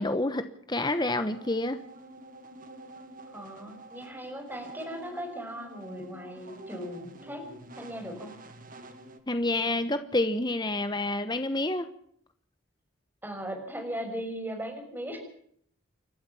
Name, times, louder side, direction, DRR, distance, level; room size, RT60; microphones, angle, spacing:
voice 1, 0.0-1.8 9.3-11.9, left 2 dB, 20° left, 9 dB, 1.1 m, -28 dB
sound 1, 0.8-9.2, right 2 dB, 40° right, 2.4 m, -48 dB
voice 2, 3.3-7.5 7.8-8.3 13.2-15.2, equal, 10° right, 3 dB, 6.1 m, -38 dB
29.5 x 13.0 x 7.1 m, 0.65 s
head